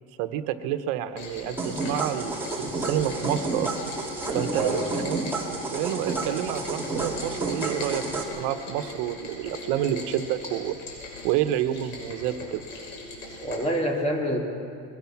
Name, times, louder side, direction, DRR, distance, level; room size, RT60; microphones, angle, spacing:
voice 1, 0.2-3.7 4.3-5.3 5.7-10.8 11.2-12.6, right 11 dB, 70° right, 9 dB, 1.2 m, -29 dB
Rain, 1.2-13.6, left 2 dB, 85° left, 6.3 m, -39 dB
sound 1, 1.6-8.2, right 2 dB, 5° right, 2.8 m, -31 dB
voice 2, 4.5-5.0 13.4-14.4, equal, 20° left, 0 dB, 3.2 m, -27 dB
21.5 x 20.5 x 6.0 m, 2.4 s
cardioid pair, 140°, 31 cm